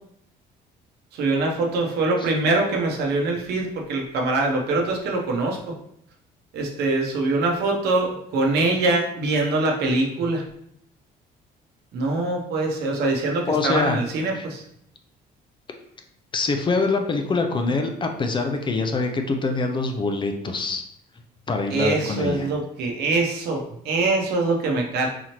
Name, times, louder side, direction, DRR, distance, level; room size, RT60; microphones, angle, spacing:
voice 1, 1.1-5.8 6.5-10.4 11.9-14.6 21.7-25.1, right 2 dB, 75° right, 1 dB, 0.9 m, -23 dB
voice 2, 13.5-14.0 14.3-14.5 16.3-20.8 21.5-22.5, left 3 dB, 30° left, 4 dB, 0.5 m, -24 dB
3.9 x 3.0 x 2.9 m, 0.71 s
cardioid pair, 110°, 17 cm